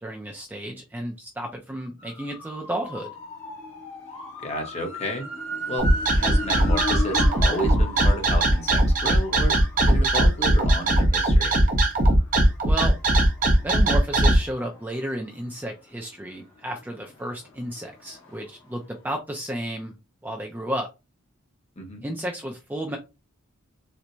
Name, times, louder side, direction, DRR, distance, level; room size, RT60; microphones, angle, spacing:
voice 1, 0.0-3.1 12.6-12.9 13.6-19.9 20.2-20.9 22.0-23.0, right 1 dB, 10° right, 2 dB, 0.4 m, -32 dB
sound 1, 2.0-15.7 16.1-18.7 19.0-19.1, left 2 dB, 65° left, 1.4 m, -38 dB
voice 2, 4.4-5.3 5.7-9.6 9.8-11.5 21.8-22.0, equal, 30° left, 3 dB, 0.9 m, -32 dB
sound 2, 5.8-14.4, right 1 dB, 40° right, 0.7 m, -19 dB
4.4 x 2.1 x 2.6 m, 0.26 s
head